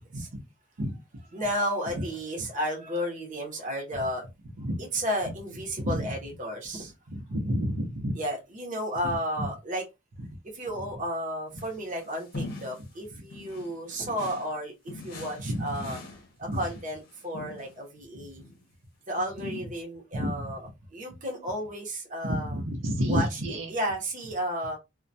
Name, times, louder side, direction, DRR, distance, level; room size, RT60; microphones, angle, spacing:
voice 1, 1.3-4.3 4.9-6.9 8.1-9.8 10.5-16.0 16.4-18.4 19.1-20.6 20.9-22.6 23.1-23.4 23.7-24.8, equal, 40° right, 0 dB, 0.7 m, -32 dB
voice 2, 5.8-6.1 7.1-8.1 9.4-9.5 15.5-15.7 16.5-16.6 20.1-20.5 22.2-23.7, equal, 75° right, 1 dB, 0.7 m, -29 dB
sound 1, 11.5-12.9 13.3-14.6 14.9-17.8 18.4-18.6 19.4-19.6, left 2 dB, 50° left, 0.7 m, -42 dB
2.2 x 2.1 x 2.6 m, 0.23 s
head